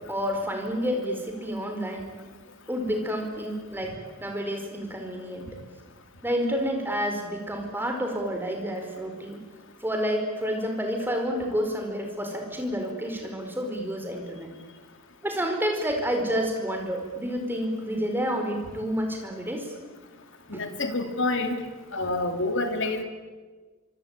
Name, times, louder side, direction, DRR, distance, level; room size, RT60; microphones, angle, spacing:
voice 1, 0.1-2.1 2.7-5.5 6.2-9.4 9.8-14.5 15.2-19.7 20.5-20.6, equal, 10° right, 3 dB, 4.7 m, -29 dB
voice 2, 20.5-21.6 21.9-23.0, left 2 dB, 55° left, 6 dB, 3.3 m, -27 dB
25.5 x 25.0 x 9.1 m, 1.4 s
head